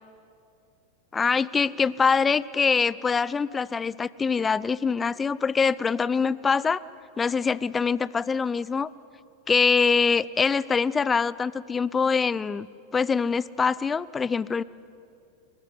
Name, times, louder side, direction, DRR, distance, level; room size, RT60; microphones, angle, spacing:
voice 1, 1.1-6.8 7.2-8.9 9.5-12.7 12.9-14.6, left 5 dB, 15° left, 20 dB, 0.5 m, -24 dB
29.5 x 15.0 x 9.8 m, 2.5 s
figure-of-eight pair, 90°, 0 cm